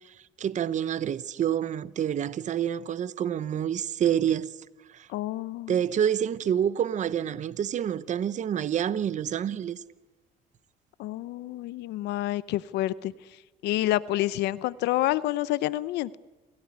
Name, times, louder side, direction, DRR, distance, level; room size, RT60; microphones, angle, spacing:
voice 1, 0.4-4.5 4.9-5.1 5.7-9.8, right 9 dB, 45° right, 0.9 m, -27 dB
voice 2, 5.1-5.8 11.0-13.1 13.6-16.2, left 15 dB, 85° left, 0.7 m, -28 dB
28.0 x 16.5 x 9.7 m
cardioid pair, 110°, 17 cm